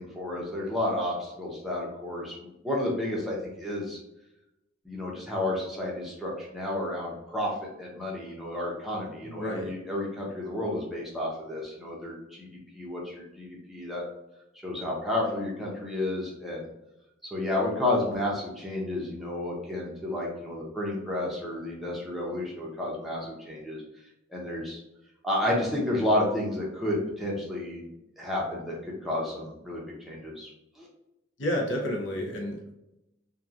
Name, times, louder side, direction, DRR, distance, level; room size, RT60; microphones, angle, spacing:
voice 1, 0.0-4.0 4.8-12.5 12.7-14.0 14.6-16.7 17.3-23.8 24.3-24.8 25.2-27.9 28.2-30.5 30.8-30.9, left 1 dB, ahead, -5 dB, 0.6 m, -31 dB
voice 2, 9.2-9.7 31.4-32.7, equal, 65° left, -1 dB, 0.6 m, -30 dB
2.9 x 2.3 x 2.4 m, 0.89 s
head